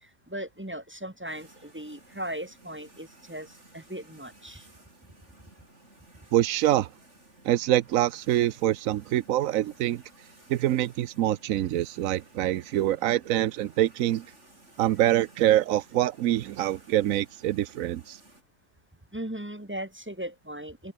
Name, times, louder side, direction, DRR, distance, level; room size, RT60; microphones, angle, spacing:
voice 1, 0.3-4.7 19.1-20.9, right 1 dB, 10° right, 1.6 m, -38 dB
sound 1, 1.3-18.4, right 2 dB, 60° right, 5.9 m, -56 dB
voice 2, 6.3-6.9 7.4-10.0 10.5-14.2 14.8-18.2, right 13 dB, 85° right, 1.1 m, -25 dB
omnidirectional pair, 1.4 m